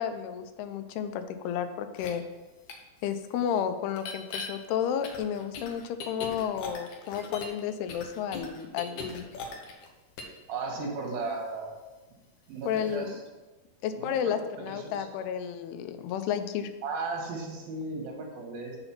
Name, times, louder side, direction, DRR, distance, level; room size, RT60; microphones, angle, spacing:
voice 1, 0.0-2.2 3.0-9.3 12.7-13.2 13.8-16.7, left 8 dB, 85° left, 9 dB, 2.7 m, -32 dB
sound 1, 2.0-2.1 2.7-2.8 3.9-4.5 5.0-7.6 7.9-9.9 10.2-10.4, left 4 dB, 65° left, 2.2 m, -39 dB
voice 2, 10.5-11.7 12.5-13.2 14.0-15.1 16.8-18.8, right 3 dB, 70° right, 0 dB, 3.5 m, -35 dB
8.3 x 6.8 x 5.9 m, 1.2 s
omnidirectional pair, 4.5 m